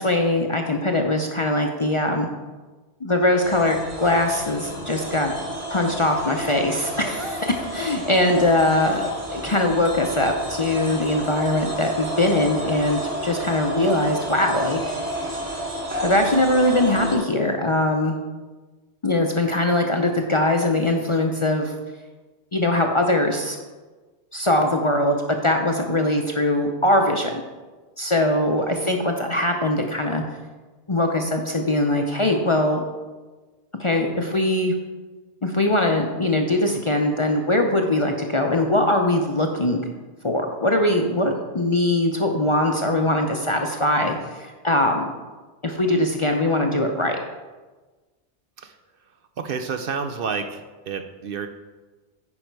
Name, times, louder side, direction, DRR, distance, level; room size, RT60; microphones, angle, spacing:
voice 1, 0.0-2.3 3.0-5.3 5.7-14.8 16.0-18.2 19.0-21.7 22.5-23.6 24.3-25.2 25.4-27.4 28.0-30.2 30.9-32.8 33.8-34.7 35.4-39.8 40.2-45.1 45.6-47.2, left 1 dB, 35° left, 3 dB, 0.6 m, -21 dB
sound 1, 3.4-17.2, equal, 30° right, 1.4 m, -31 dB
voice 2, 49.4-51.5, right 5 dB, 60° right, 7 dB, 0.7 m, -29 dB
9.5 x 5.3 x 4.6 m, 1.3 s
omnidirectional pair, 1.2 m